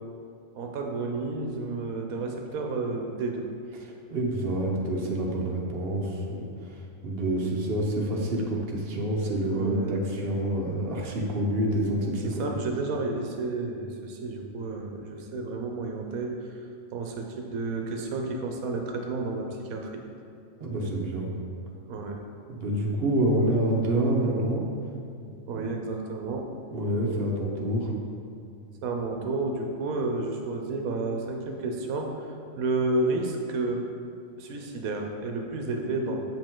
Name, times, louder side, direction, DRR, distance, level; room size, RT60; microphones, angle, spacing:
voice 1, 0.5-3.4 9.5-10.0 12.2-16.6 16.9-20.0 21.9-22.2 25.5-26.5 28.8-32.3 32.6-33.9 34.4-36.2, right 3 dB, 85° right, 2 dB, 1.1 m, -31 dB
voice 2, 3.8-6.4 7.0-12.3 20.6-21.3 22.5-24.6 26.7-27.9, right 1 dB, 45° right, -1 dB, 1.1 m, -27 dB
7.5 x 5.2 x 3.7 m, 2.4 s
omnidirectional pair, 1.5 m